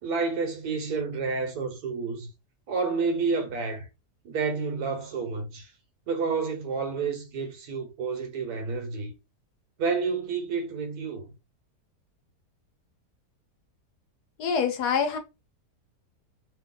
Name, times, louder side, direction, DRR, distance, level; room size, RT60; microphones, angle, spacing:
voice 1, 0.0-2.3 2.7-3.9 4.2-5.7 6.1-9.1 9.8-11.3, right 4 dB, 70° right, 1.3 m, -29 dB
voice 2, 14.4-15.2, left 6 dB, 80° left, 1.3 m, -25 dB
3.0 x 2.7 x 3.7 m
omnidirectional pair, 1.8 m